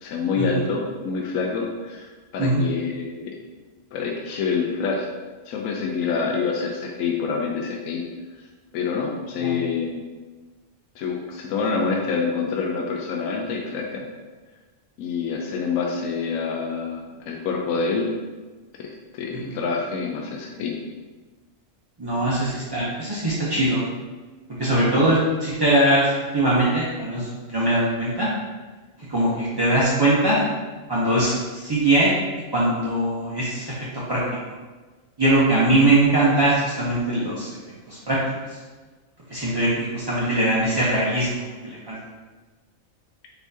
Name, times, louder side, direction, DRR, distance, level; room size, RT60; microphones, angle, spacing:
voice 1, 0.0-3.3 3.9-5.1 5.5-8.0 8.7-10.0 11.0-14.1 15.0-18.1 18.8-20.7, left 5 dB, 85° left, 0 dB, 1.0 m, -27 dB
voice 2, 22.0-23.8 24.6-28.3 29.1-30.4 30.9-32.1 32.5-33.7 34.1-34.2 35.2-37.5 37.9-38.2 39.3-42.0, right 1 dB, 30° right, -8 dB, 0.5 m, -21 dB
4.4 x 4.2 x 2.7 m, 1.3 s
omnidirectional pair, 1.4 m